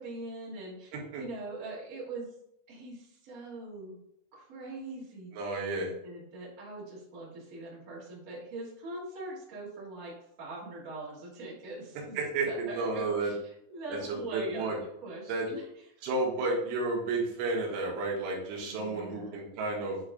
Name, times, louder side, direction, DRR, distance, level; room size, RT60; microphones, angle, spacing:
voice 1, 0.0-2.3 2.7-4.0 4.3-10.1 10.4-15.9 16.4-16.5 18.6-19.3, right 2 dB, 40° right, -7 dB, 1.3 m, -42 dB
voice 2, 5.3-5.9 12.2-13.3 13.9-14.8 15.3-15.5 16.0-20.0, right 3 dB, 75° right, -3 dB, 3.8 m, -32 dB
9.4 x 3.2 x 3.8 m, 0.76 s
omnidirectional pair, 5.7 m